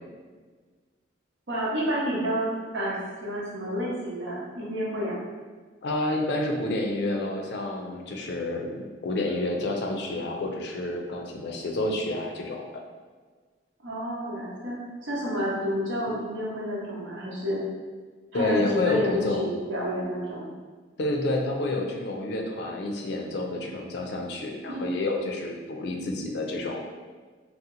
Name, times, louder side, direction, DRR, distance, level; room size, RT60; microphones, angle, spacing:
voice 1, 1.5-2.9 3.2-5.2 13.8-14.8 15.0-17.6 18.3-20.5 24.7-24.8, equal, 90° right, -6 dB, 1.0 m, -29 dB
voice 2, 5.8-12.6 18.3-19.5 21.0-26.9, left 2 dB, 60° left, 1 dB, 0.4 m, -29 dB
2.8 x 2.1 x 3.7 m, 1.4 s
head